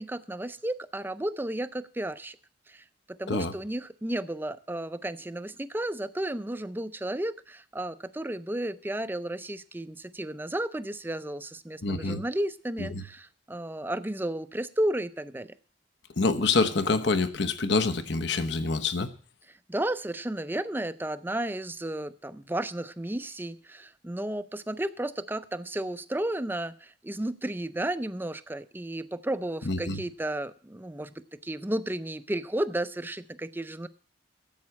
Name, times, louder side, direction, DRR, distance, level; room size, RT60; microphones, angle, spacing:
voice 1, 0.0-2.4 2.7-15.5 19.5-33.9, right 1 dB, 10° right, 13 dB, 0.5 m, -33 dB
voice 2, 11.8-12.2 12.8-13.0 16.2-19.1 29.6-30.0, left 3 dB, 60° left, 9 dB, 1.0 m, -26 dB
10.5 x 7.9 x 8.4 m, 0.43 s
head